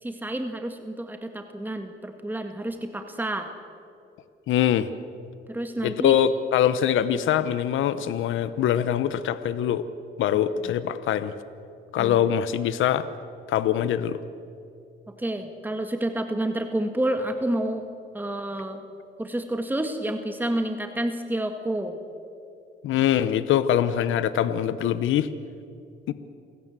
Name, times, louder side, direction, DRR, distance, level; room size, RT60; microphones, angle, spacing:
voice 1, 0.0-3.5 5.5-6.1 10.7-10.8 12.0-12.2 15.1-17.8 18.1-18.8 19.2-22.0, right 1 dB, 10° right, 6 dB, 1.7 m, -29 dB
voice 2, 4.5-4.9 5.8-9.8 10.2-11.3 11.9-13.1 13.5-14.2 22.8-25.3 26.1-26.2, left 10 dB, 80° left, 13 dB, 0.9 m, -23 dB
28.0 x 16.5 x 7.5 m, 2.6 s
cardioid pair, 90°, 20 cm